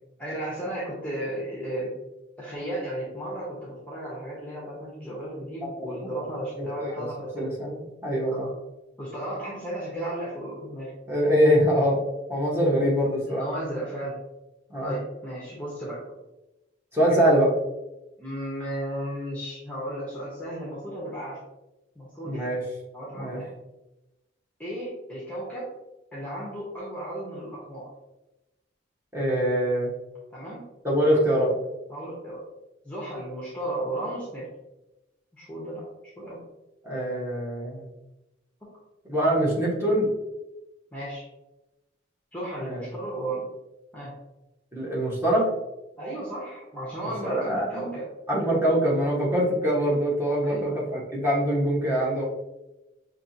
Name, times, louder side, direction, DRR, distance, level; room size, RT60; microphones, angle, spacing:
voice 1, 0.2-1.9 2.4-7.5 8.3-8.5 9.0-10.9 13.3-14.2 14.8-16.0 18.2-21.4 22.0-22.5 22.9-23.5 24.6-25.7 26.1-27.9 30.3-30.7 31.1-31.3 31.9-32.4 32.8-34.5 35.3-35.9 36.2-36.4 38.6-38.7 40.9-41.3 42.3-43.5 43.9-44.1 46.0-48.1 50.4-50.8, right 1 dB, 5° left, -6 dB, 0.9 m, -34 dB
voice 2, 7.4-8.5 11.1-12.0 12.3-13.4 14.7-14.9 16.9-17.5 22.2-22.6 23.2-23.4 29.1-29.9 30.8-31.5 36.8-37.9 39.0-40.1 42.6-42.8 44.7-45.5 47.2-48.0 48.3-52.2, equal, 10° right, -6 dB, 1.2 m, -24 dB
5.9 x 2.9 x 2.7 m, 0.98 s
head